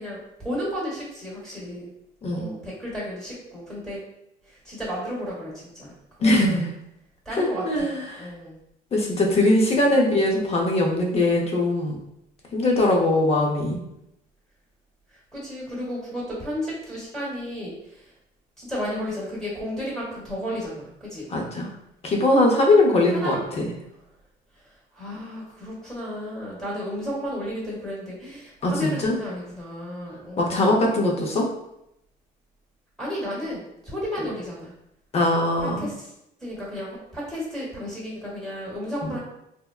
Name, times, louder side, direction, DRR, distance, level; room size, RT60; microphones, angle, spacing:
voice 1, 0.0-1.9 2.3-4.0 4.4-6.7 7.2-8.5 9.8-10.5 15.1-18.1 18.6-21.3 23.1-23.4 24.9-30.8 33.0-34.7 35.6-36.1 36.4-39.2, equal, ahead, -7 dB, 1.0 m, -33 dB
voice 2, 2.2-2.5 6.2-6.6 7.4-8.3 8.9-12.0 12.5-13.8 21.3-21.7 22.0-23.7 28.6-29.2 30.4-31.5 35.1-35.9 39.0-39.1, left 1 dB, 40° left, 0 dB, 0.7 m, -21 dB
3.5 x 2.0 x 2.3 m, 0.82 s
cardioid pair, 110°, 17 cm